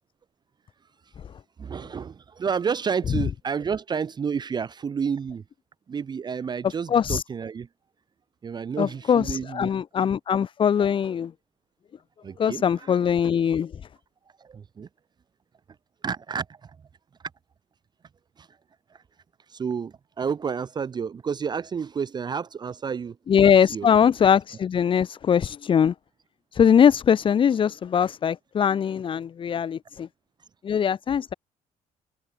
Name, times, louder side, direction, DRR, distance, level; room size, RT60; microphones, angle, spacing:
voice 1, 1.6-5.4 5.9-7.7 8.4-9.7 12.2-13.0 14.5-14.9 16.0-16.4 19.5-23.1 23.7-23.9, right 6 dB, 30° right, 0.6 m, -30 dB
voice 2, 6.9-7.2 8.8-11.3 12.4-13.7 23.3-25.9 26.5-30.1 30.6-31.3, left 8 dB, 35° left, 0.7 m, -21 dB
cardioid pair, 115°, 14 cm